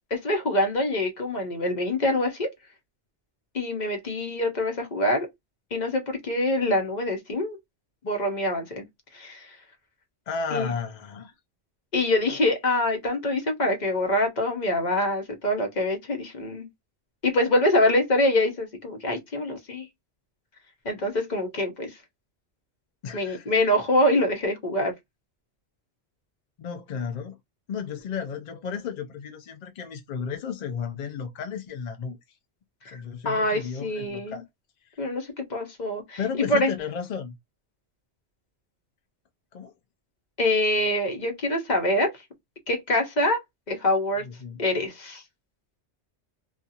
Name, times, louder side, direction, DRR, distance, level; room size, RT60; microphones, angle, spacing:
voice 1, 0.1-2.5 3.5-5.3 5.7-7.6 8.0-8.9 9.1-9.6 10.5-10.7 11.9-16.7 17.2-19.9 20.8-22.0 23.1-24.9 32.8-33.0 33.2-34.4 35.0-36.2 36.5-36.7 40.4-42.1 42.7-43.4 43.7-44.3 44.6-45.2, left 1 dB, 45° left, 0.8 m, -25 dB
voice 2, 10.3-11.3 23.0-23.5 26.6-27.4 27.7-32.2 32.9-34.4 34.9-35.0 36.2-37.4 39.5-39.7 44.2-44.6, left 6 dB, 65° left, 0.4 m, -33 dB
2.4 x 2.4 x 2.7 m
omnidirectional pair, 1.2 m